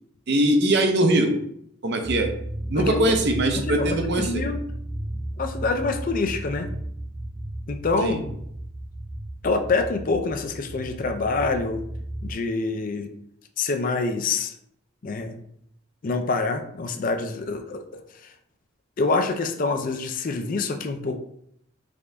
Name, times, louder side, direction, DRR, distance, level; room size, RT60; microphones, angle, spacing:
voice 1, 0.3-1.4 1.8-2.3 2.7-4.5 8.0-8.2, right 1 dB, 55° right, 4 dB, 0.6 m, -21 dB
sound 1, 2.0-12.3, right 1 dB, 5° right, 0.7 m, -34 dB
voice 2, 2.8-3.2 3.5-4.6 5.4-6.7 7.7-8.2 9.4-11.8 12.2-13.1 13.6-14.5 15.0-15.4 16.0-17.8 19.0-21.2, left 3 dB, 40° left, 6 dB, 0.4 m, -26 dB
5.1 x 2.5 x 3.3 m, 0.70 s
head